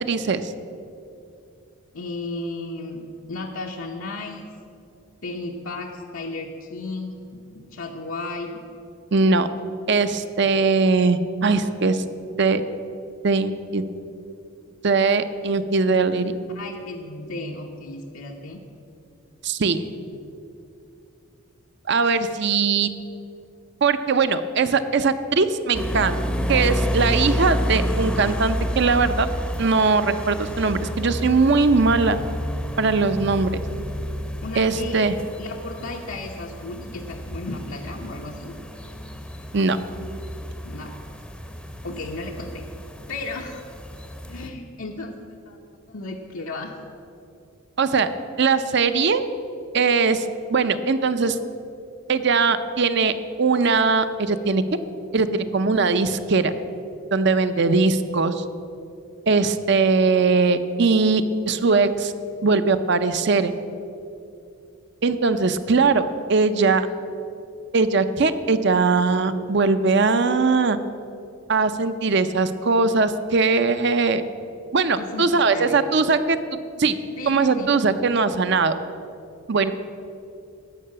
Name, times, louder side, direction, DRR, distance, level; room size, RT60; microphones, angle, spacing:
voice 1, 0.0-0.5 9.1-9.5 9.9-12.0 12.4-12.6 13.2-13.8 14.8-16.3 19.4-19.8 21.9-22.9 23.8-26.2 26.5-29.3 29.6-32.2 32.8-33.5 34.6-35.1 39.5-39.8 47.8-48.1 48.4-49.2 49.7-50.2 50.5-51.4 52.1-53.1 53.4-54.6 55.1-56.6 57.1-58.4 59.3-62.1 62.4-63.5 65.0-66.9 67.7-70.8 71.5-74.2 74.7-76.4 76.8-77.0 77.3-78.7 79.5-79.7, right 4 dB, 55° right, 11 dB, 0.6 m, -20 dB
voice 2, 1.9-3.0 3.3-4.5 5.2-8.6 10.5-10.6 16.5-18.6 34.4-35.1 35.4-38.5 40.6-40.9 41.8-42.7 43.1-43.7 44.3-46.7 57.5-57.9 75.0-75.8 77.2-77.7, left 2 dB, 80° left, 0 dB, 0.9 m, -34 dB
sound 1, 25.7-44.5, equal, 5° left, 0.6 m, -30 dB
13.5 x 5.6 x 8.6 m, 2.6 s
head